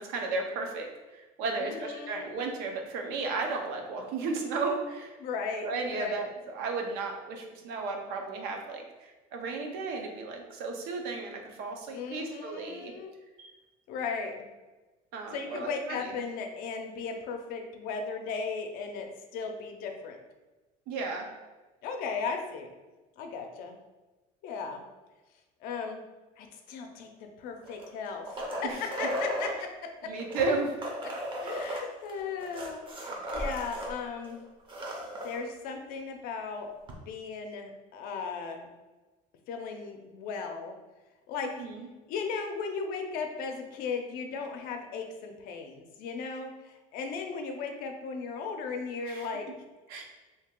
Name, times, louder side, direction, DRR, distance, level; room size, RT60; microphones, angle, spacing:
voice 1, 0.0-5.1 5.6-12.9 13.4-13.5 15.1-16.2 20.9-21.3 28.6-28.8 30.0-30.7 31.4-31.5 41.6-41.9 49.1-49.3 49.9-50.0, right 3 dB, 70° right, 2 dB, 0.7 m, -34 dB
voice 2, 1.6-2.3 5.2-6.2 11.9-13.1 13.9-14.4 15.3-20.2 21.8-22.7 23.2-23.7 24.4-24.8 25.6-26.0 26.4-29.7 30.0-30.1 31.4-34.4 35.2-36.7 37.1-38.7 39.5-40.7 41.3-41.7 42.1-49.5, left 5 dB, 60° left, 4 dB, 0.6 m, -36 dB
sound 1, 27.6-29.6 30.2-33.9 34.2-34.3 34.6-35.4 36.9-37.0, equal, 30° right, 0.7 m, -35 dB
2.8 x 2.8 x 3.7 m, 1.2 s
cardioid pair, 140°, 17 cm